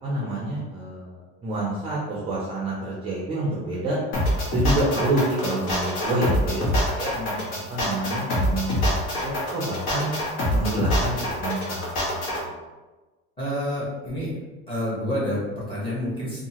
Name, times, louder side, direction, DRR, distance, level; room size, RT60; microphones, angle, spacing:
voice 1, 0.0-4.0 4.5-7.1 7.7-10.1 10.5-12.5, right 1 dB, 20° right, -6 dB, 0.3 m, -28 dB
sound 1, 4.1-12.4, left 1 dB, 80° left, 1.1 m, -25 dB
voice 2, 7.1-7.6 13.4-14.3 14.7-16.5, equal, 15° left, -7 dB, 0.9 m, -29 dB
2.7 x 2.3 x 2.8 m, 1.2 s
cardioid pair, 170°, 31 cm